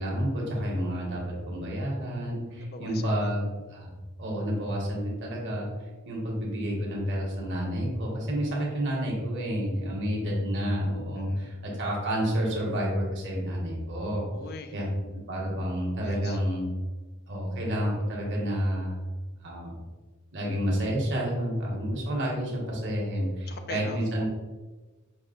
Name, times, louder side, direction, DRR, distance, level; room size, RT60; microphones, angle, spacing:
voice 1, 0.0-3.9 4.2-5.7 6.0-14.2 14.7-16.7 17.3-19.1 19.4-19.7 20.3-24.3, equal, 60° right, -3 dB, 1.2 m, -30 dB
voice 2, 2.6-3.3 8.4-8.5 11.2-11.5 14.3-14.8 16.0-16.4 23.5-24.2, left 3 dB, 45° left, 7 dB, 0.4 m, -42 dB
5.4 x 2.2 x 3.8 m, 1.3 s
head